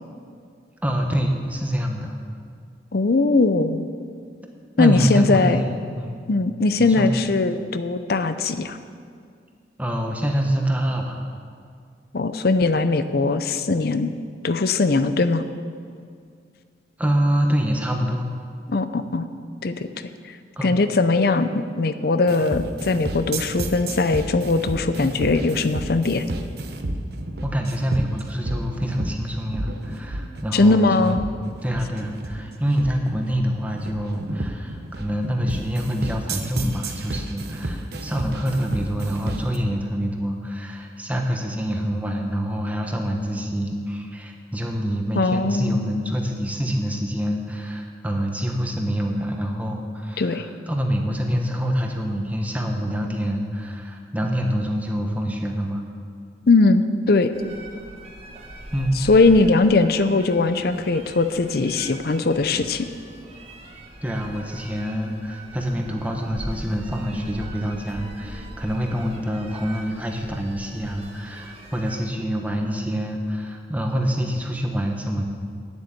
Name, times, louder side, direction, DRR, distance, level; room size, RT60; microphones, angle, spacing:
voice 1, 0.8-2.1 4.8-6.2 6.8-7.1 9.8-11.2 17.0-18.3 20.6-20.8 27.4-31.2 31.6-55.8 58.7-59.0 64.0-75.3, equal, 10° right, 2 dB, 1.1 m, -26 dB
voice 2, 2.9-3.8 4.8-5.6 6.3-8.8 12.1-14.1 14.4-15.5 18.7-19.3 19.6-19.9 20.6-26.2 30.5-31.2 45.2-45.9 50.2-50.5 56.5-57.4 59.0-62.9, left 3 dB, 55° left, 11 dB, 0.6 m, -20 dB
sound 1, 22.3-39.6, right 1 dB, 60° right, 0.9 m, -31 dB
sound 2, 57.3-72.0, right 1 dB, 35° right, 1.4 m, -40 dB
9.7 x 8.0 x 8.8 m, 2.2 s
head